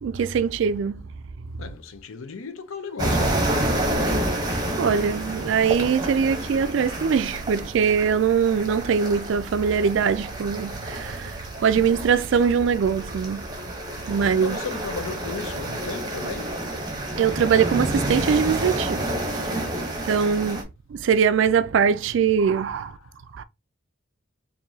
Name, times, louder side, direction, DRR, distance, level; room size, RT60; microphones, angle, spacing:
voice 1, 0.0-1.0 3.9-4.2 4.8-13.4 14.1-14.6 17.2-19.5 20.0-20.6 20.9-23.0 23.3-23.4, right 6 dB, 65° right, 0.3 m, -22 dB
voice 2, 1.6-3.5 14.4-16.5 22.8-23.1, left 4 dB, 85° left, 0.6 m, -35 dB
sound 1, 3.0-20.6, right 1 dB, 20° right, 0.8 m, -29 dB
4.7 x 2.6 x 2.7 m
head